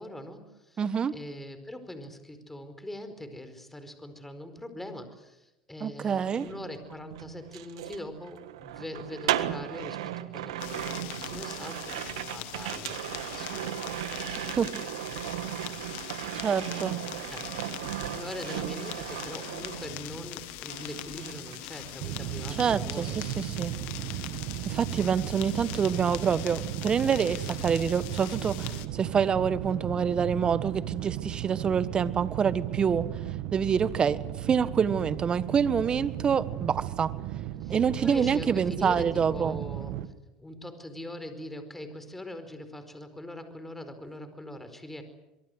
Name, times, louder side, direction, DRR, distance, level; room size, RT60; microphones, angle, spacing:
voice 1, 0.0-0.8 1.1-13.8 15.2-15.9 17.3-17.5 18.0-23.2 37.6-40.1 40.4-45.0, left 1 dB, 5° left, 9 dB, 4.7 m, -42 dB
voice 2, 0.8-1.1 5.8-6.5 14.6-14.7 16.3-17.0 22.6-23.7 24.6-33.1 33.5-37.1 37.7-39.6, right 7 dB, 30° right, 14 dB, 1.5 m, -27 dB
sound 1, 6.2-20.4 20.7-22.2 22.4-22.8, right 13 dB, 85° right, 1.6 m, -36 dB
sound 2, 10.6-28.9, left 15 dB, 65° left, 2.1 m, -42 dB
sound 3, 22.0-40.1, right 13 dB, 65° right, 1.8 m, -35 dB
24.5 x 23.0 x 8.1 m, 0.96 s
supercardioid pair, 100°, 3 cm